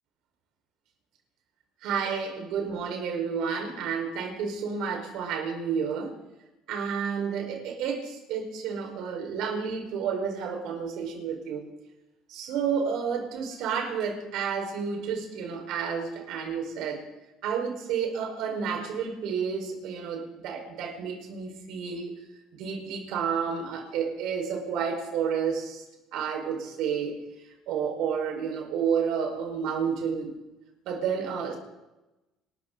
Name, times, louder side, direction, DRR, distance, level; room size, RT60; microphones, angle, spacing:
voice 1, 1.8-6.1 6.7-11.7 12.3-17.0 17.4-22.1 22.6-25.8 26.1-27.2 27.7-30.3 30.8-31.6, right 6 dB, 75° right, 2 dB, 4.8 m, -30 dB
27.5 x 13.5 x 4.0 m, 1.0 s
cardioid pair, 100°, 0 cm